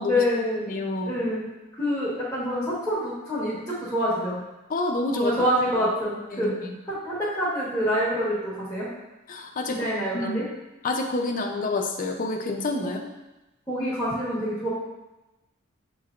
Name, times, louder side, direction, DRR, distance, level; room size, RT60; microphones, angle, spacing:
voice 1, 0.1-0.6 1.0-1.5 1.8-4.4 5.1-6.5 6.8-8.9 9.7-10.5 12.8-13.0 13.7-14.7, equal, 10° left, -9 dB, 1.2 m, -26 dB
voice 2, 0.7-1.2 4.7-5.3 6.3-6.7 9.3-9.8 10.1-10.4 10.8-13.0, left 2 dB, 40° left, 3 dB, 0.5 m, -28 dB
6.4 x 3.1 x 2.4 m, 1.0 s
head